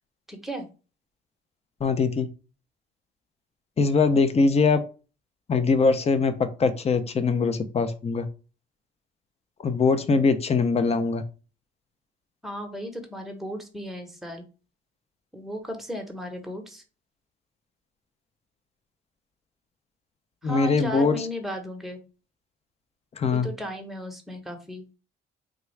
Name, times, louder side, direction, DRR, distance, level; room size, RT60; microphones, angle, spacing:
voice 1, 0.3-0.7 12.4-14.5 15.3-16.8 20.4-22.0 23.2-24.8, equal, ahead, 2 dB, 0.9 m, -35 dB
voice 2, 1.8-2.3 3.8-4.8 5.5-6.3 6.6-8.3 9.6-11.2 20.4-21.3 23.2-23.5, left 4 dB, 30° left, 10 dB, 0.5 m, -22 dB
3.6 x 2.3 x 3.1 m, 0.34 s
cardioid pair, 90°, 20 cm